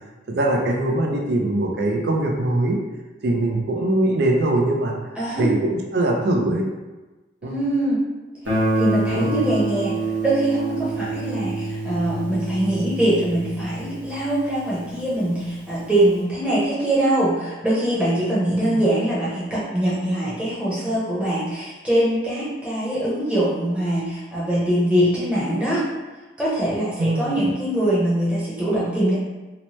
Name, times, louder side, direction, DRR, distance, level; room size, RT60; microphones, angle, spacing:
voice 1, 0.3-2.8 3.2-5.0 5.4-6.6 7.4-7.5 9.1-9.3 18.7-18.8 27.0-27.3, right 1 dB, 55° right, 1 dB, 0.4 m, -22 dB
voice 2, 5.2-5.5 7.4-8.0 8.4-25.8 26.4-29.2, right 1 dB, 5° right, -9 dB, 0.8 m, -23 dB
Guitar, 8.4-15.2, right 2 dB, 75° right, 0.9 m, -27 dB
2.8 x 2.1 x 3.0 m, 1.2 s
head